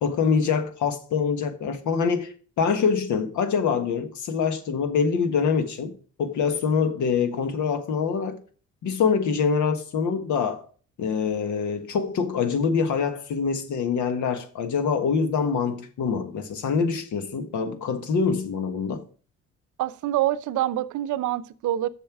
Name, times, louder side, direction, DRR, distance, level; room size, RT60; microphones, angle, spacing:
voice 1, 0.0-8.4 8.8-10.7 11.0-19.0, left 6 dB, 75° left, 1.5 m, -25 dB
voice 2, 19.8-21.9, right 13 dB, 75° right, 0.7 m, -26 dB
7.2 x 6.7 x 6.0 m
cardioid pair, 90°, 30 cm